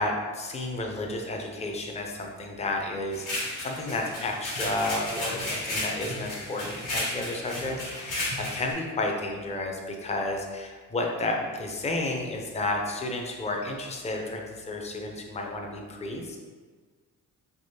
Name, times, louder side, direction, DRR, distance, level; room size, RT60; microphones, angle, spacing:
voice 1, 0.0-16.4, left 2 dB, 20° left, 1 dB, 0.5 m, -32 dB
sound 1, 3.1-8.7, left 1 dB, 75° left, 1.5 m, -33 dB
3.4 x 2.9 x 2.7 m, 1.5 s
cardioid pair, 95°, 31 cm